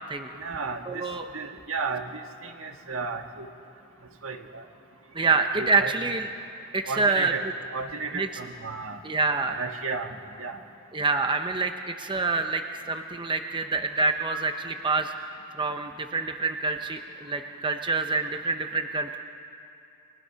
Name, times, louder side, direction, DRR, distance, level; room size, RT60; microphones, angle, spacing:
voice 1, 0.3-1.0 1.3-2.1 2.4-3.5 4.2-4.6 5.3-5.9 6.9-7.4 7.7-9.0 9.5-10.1 10.4-10.6, right 4 dB, 70° right, 5 dB, 1.6 m, -33 dB
voice 2, 0.9-1.3 5.1-6.3 6.7-7.3 8.1-8.3 9.0-9.6 10.9-12.6 12.9-15.1 15.6-19.2, right 3 dB, 25° right, 6 dB, 0.8 m, -26 dB
30.0 x 24.0 x 5.7 m, 2.6 s
head